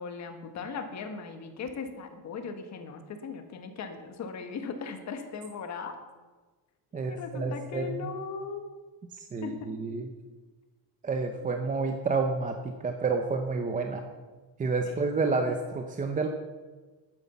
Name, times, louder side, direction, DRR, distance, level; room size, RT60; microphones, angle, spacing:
voice 1, 0.0-6.0 7.1-8.7 9.4-9.7 14.8-15.0, left 5 dB, 40° left, 6 dB, 1.6 m, -38 dB
voice 2, 6.9-8.1 9.2-10.1 11.0-14.0 14.6-16.3, right 4 dB, 20° right, 5 dB, 0.6 m, -29 dB
11.5 x 9.6 x 7.1 m, 1.3 s
cardioid pair, 175°, 42 cm